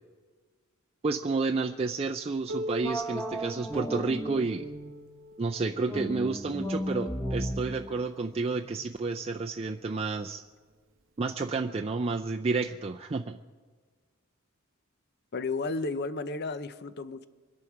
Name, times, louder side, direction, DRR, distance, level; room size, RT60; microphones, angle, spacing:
voice 1, 1.0-4.7 5.4-10.4 11.2-13.4, right 3 dB, 30° right, 3 dB, 0.4 m, -30 dB
Piano, 2.5-7.8 8.7-8.8 9.3-9.4 10.2-10.3 11.3-11.4, equal, 65° right, 0.8 m, -42 dB
sound 1, 2.8-5.1 5.9-9.2, right 1 dB, 15° left, 1.3 m, -35 dB
voice 2, 15.3-17.3, left 3 dB, 50° left, 13 dB, 0.7 m, -33 dB
25.0 x 11.0 x 4.7 m, 1.5 s
head